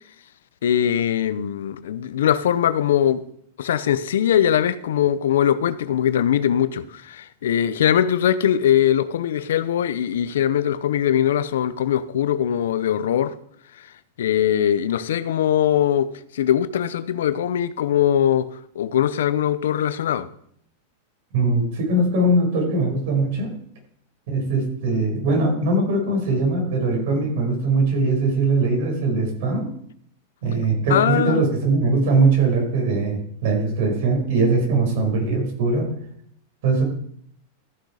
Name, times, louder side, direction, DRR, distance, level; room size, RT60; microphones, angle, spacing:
voice 1, 0.6-3.2 3.6-13.3 14.2-18.5 18.8-20.3 30.9-31.4, left 10 dB, 85° left, 0.7 m, -21 dB
voice 2, 21.3-23.5 24.3-29.7 30.4-35.9 36.6-36.8, right 3 dB, 65° right, 5.0 m, -21 dB
14.0 x 6.5 x 4.9 m
supercardioid pair, 140°, 0 cm